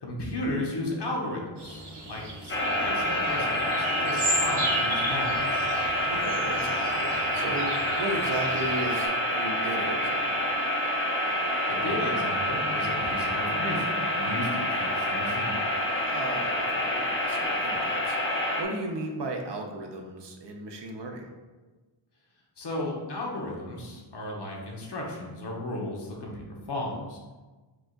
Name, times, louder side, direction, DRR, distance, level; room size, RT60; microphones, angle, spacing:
voice 1, 0.0-5.6 11.7-15.5 22.6-27.2, left 1 dB, 55° left, -2 dB, 1.0 m, -34 dB
sound 1, 1.6-9.1, right 1 dB, 85° right, 1.3 m, -35 dB
sound 2, 2.5-18.6, equal, 25° left, 0.5 m, -27 dB
voice 2, 6.1-10.5 16.1-21.3, right 2 dB, 60° right, 2 dB, 0.7 m, -35 dB
4.8 x 2.4 x 3.8 m, 1.3 s
wide cardioid pair, 120°, 48 cm